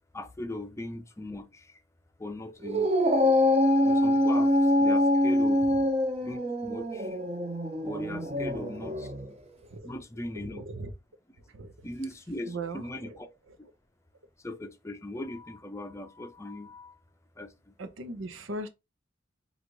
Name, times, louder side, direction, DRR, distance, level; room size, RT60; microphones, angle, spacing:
voice 1, 0.1-1.7 2.2-2.9 3.8-5.6 6.2-7.2 7.8-9.1 9.8-10.6 11.8-13.3 13.6-13.7 14.4-17.0 17.4-17.7, left 1 dB, 15° left, 0.5 m, -39 dB
Dog, 2.6-9.3, left 1 dB, 30° right, 0.7 m, -24 dB
voice 2, 9.6-9.9 10.4-10.9 11.5-11.7 12.5-13.2 13.5-13.6 17.8-18.7, right 2 dB, 85° right, 0.7 m, -39 dB
3.9 x 2.5 x 4.6 m
head